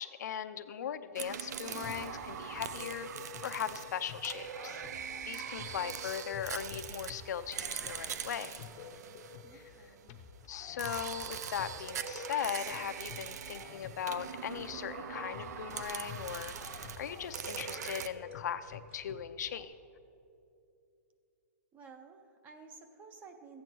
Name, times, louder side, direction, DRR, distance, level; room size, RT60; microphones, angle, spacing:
voice 1, 0.0-4.8 5.3-8.6 9.5-9.7 10.5-19.7, left 8 dB, 85° left, 10 dB, 0.6 m, -39 dB
sound 1, 1.1-10.0 10.8-18.1, right 8 dB, 75° right, 0.5 m, -42 dB
sound 2, 1.7-19.6, left 7 dB, 30° left, 0.6 m, -51 dB
voice 2, 9.4-10.2 21.7-23.6, right 4 dB, 15° right, 7 dB, 0.5 m, -54 dB
sound 3, 14.1-19.2, right 5 dB, 45° right, 0.8 m, -60 dB
14.0 x 8.4 x 4.6 m, 2.6 s
hypercardioid pair, 170°, 9 cm